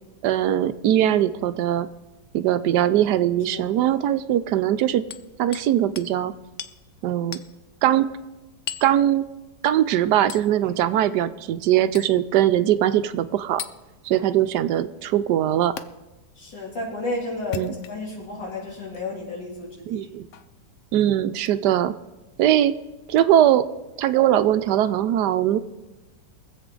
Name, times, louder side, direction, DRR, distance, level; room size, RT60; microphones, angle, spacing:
voice 1, 0.2-1.9 2.3-5.0 5.4-6.3 7.0-7.4 7.8-8.1 8.8-9.3 9.6-13.6 14.0-15.7 17.5-17.7 19.9-20.3 20.9-21.9 22.4-22.7 23.1-23.6 24.0-25.6, right 11 dB, 75° right, 12 dB, 1.1 m, -21 dB
Hammer, 5.1-5.7 6.0-6.1 6.6-6.8 7.3-7.5 8.7-8.9 10.3-10.5 11.9-12.2 13.6-13.8 15.8-15.9 17.4-18.2 18.9-19.0 20.3-20.5 21.4-21.6 23.1-23.2, left 10 dB, 65° left, 0.7 m, -36 dB
voice 2, 16.4-20.1, left 2 dB, 85° left, -3 dB, 3.6 m, -32 dB
23.0 x 7.9 x 3.8 m, 1.1 s
omnidirectional pair, 1.9 m